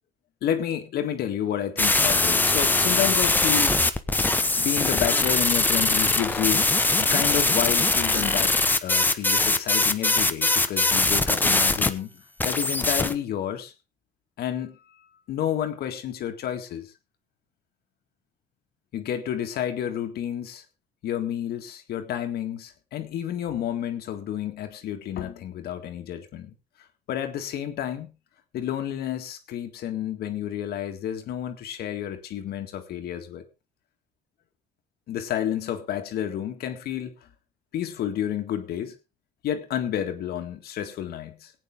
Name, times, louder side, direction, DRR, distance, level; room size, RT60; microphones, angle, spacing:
voice 1, 0.4-3.8 4.6-6.7 7.0-13.7 14.4-14.8 15.3-16.9 18.9-20.6 21.0-26.5 27.1-28.1 28.5-33.4 35.1-37.1 37.7-38.9 39.4-41.5, left 10 dB, 70° left, 1.9 m, -30 dB
sound 1, 1.8-11.9 12.4-13.1, left 2 dB, 10° left, 1.0 m, -22 dB
18.5 x 9.0 x 3.7 m
cardioid pair, 110°, 17 cm